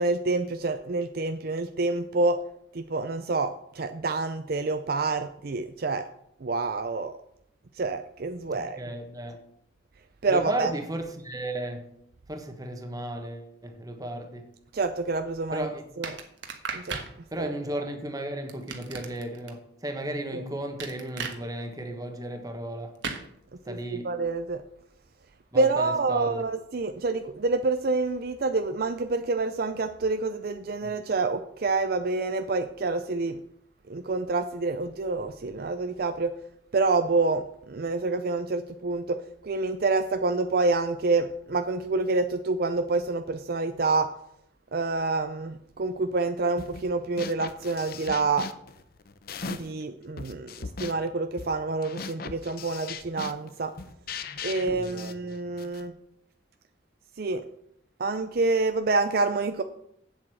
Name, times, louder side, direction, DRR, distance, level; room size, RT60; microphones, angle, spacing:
voice 1, 0.0-2.4 2.7-6.1 6.4-7.2 7.8-8.8 10.2-10.7 14.7-15.7 16.0-16.1 16.7-17.0 17.4-17.5 20.3-20.4 23.7-23.8 24.0-24.6 25.5-33.4 33.9-36.3 36.7-39.2 39.4-44.1 44.7-48.5 49.4-53.7 54.4-55.9 57.2-57.4 58.0-59.6, right 3 dB, 50° right, 0.5 m, -27 dB
voice 2, 8.4-9.4 10.3-12.0 12.3-14.6 15.5-15.9 17.3-23.0 23.6-24.3 25.5-26.5 30.8-31.0 54.7-55.2, right 1 dB, 20° right, 1.4 m, -35 dB
sound 1, 16.0-17.1 18.5-19.5 20.8-21.4 23.0-23.2, right 5 dB, 70° right, 1.4 m, -35 dB
sound 2, 46.6-46.9 47.2-49.8 50.2-55.9, left 5 dB, 50° left, 0.7 m, -39 dB
8.4 x 7.5 x 6.3 m
head